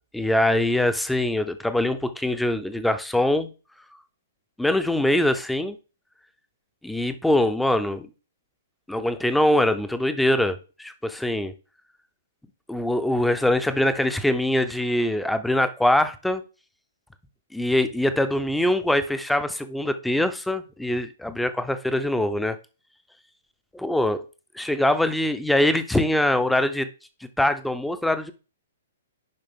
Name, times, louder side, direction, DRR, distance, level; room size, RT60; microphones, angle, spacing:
voice 1, 0.1-3.5 4.6-5.8 6.8-8.1 8.9-11.5 12.7-16.4 17.5-22.6 23.8-24.2 24.5-26.9 27.4-28.3, left 1 dB, 5° left, 0.8 m, -23 dB
10.5 x 5.4 x 3.7 m
figure-of-eight pair, 115°, 0 cm